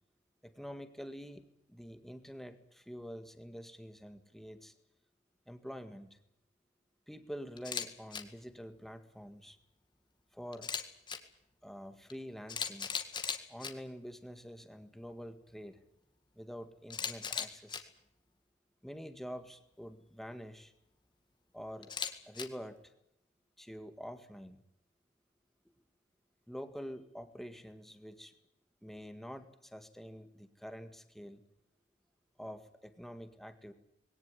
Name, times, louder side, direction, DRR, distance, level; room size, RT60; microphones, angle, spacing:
voice 1, 0.4-4.7 5.5-6.2 7.1-9.6 10.3-10.7 11.6-12.9 13.5-15.8 16.4-17.9 18.8-20.7 21.5-21.9 22.3-22.8 23.6-24.6 26.5-28.3 28.8-31.4 32.4-33.7, equal, ahead, 8 dB, 1.9 m, -47 dB
Camera, 7.6-7.9 8.1-8.2 10.5-11.2 12.1-12.2 12.5-13.7 16.9-17.8 21.8-22.4, left 6 dB, 25° left, 2.1 m, -37 dB
21.5 x 18.0 x 9.6 m, 0.80 s
head